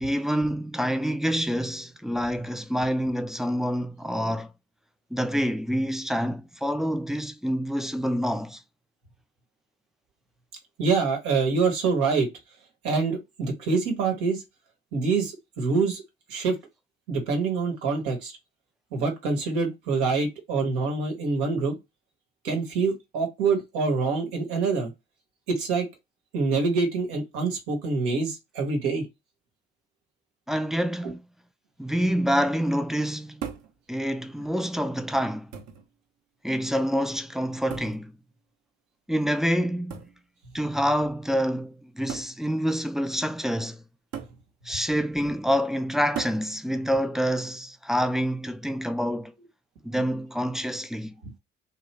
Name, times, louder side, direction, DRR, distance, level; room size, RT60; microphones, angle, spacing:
voice 1, 0.0-4.5 5.1-8.6 30.5-31.2 31.8-33.4 33.9-35.5 36.4-38.1 39.1-40.1 40.5-43.8 44.6-49.3 49.8-51.1, equal, ahead, 0.4 m, -27 dB
voice 2, 10.8-12.3 12.8-14.4 14.9-16.0 16.3-16.6 17.1-18.3 18.9-21.8 22.4-24.9 25.5-25.9 26.3-29.0 49.9-50.1, right 4 dB, 75° right, 1.1 m, -25 dB
sound 1, 33.4-33.8 34.8-34.9 35.5-35.9 37.7-38.1 39.9-40.2 41.3-41.4 42.1-42.4 44.1-44.4 46.2-46.5 48.0-48.4, right 8 dB, 50° right, 0.8 m, -37 dB
3.0 x 2.3 x 3.2 m
figure-of-eight pair, 45°, 33 cm